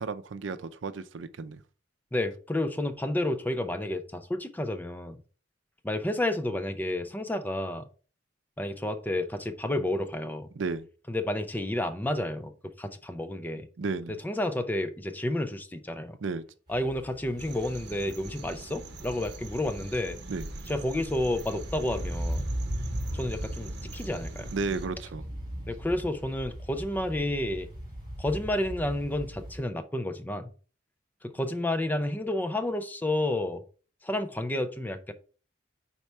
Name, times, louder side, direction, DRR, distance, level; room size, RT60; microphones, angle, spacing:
voice 1, 0.0-1.6 10.5-10.9 13.8-14.2 16.2-16.4 20.3-20.5 24.5-25.2, right 4 dB, 80° right, 0.5 m, -33 dB
voice 2, 2.1-5.2 5.8-7.9 8.6-10.5 11.1-13.7 14.2-16.2 16.7-20.2 20.7-22.5 23.1-24.5 25.7-27.7 28.2-30.5 31.2-33.6 34.0-35.1, left 1 dB, 10° left, 0.5 m, -30 dB
sound 1, 16.7-29.6, equal, 25° right, 3.0 m, -38 dB
sound 2, 17.4-24.9, right 2 dB, 60° right, 0.9 m, -43 dB
4.7 x 4.3 x 5.4 m
head